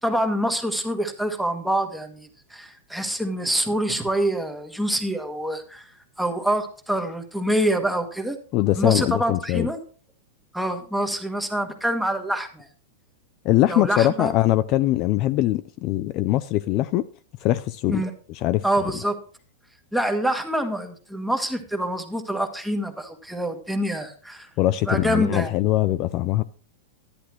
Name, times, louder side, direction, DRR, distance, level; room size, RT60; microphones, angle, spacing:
voice 1, 0.0-5.9 6.2-8.4 8.8-9.8 10.5-12.7 13.7-14.3 17.9-18.1 18.6-19.2 19.9-24.5 24.8-25.5, right 1 dB, ahead, 1.4 m, -26 dB
voice 2, 8.5-9.7 13.4-17.1 17.4-18.0 18.3-18.6 24.6-26.4, left 15 dB, 40° left, 0.4 m, -22 dB
11.0 x 10.0 x 3.1 m
supercardioid pair, 150°, 0 cm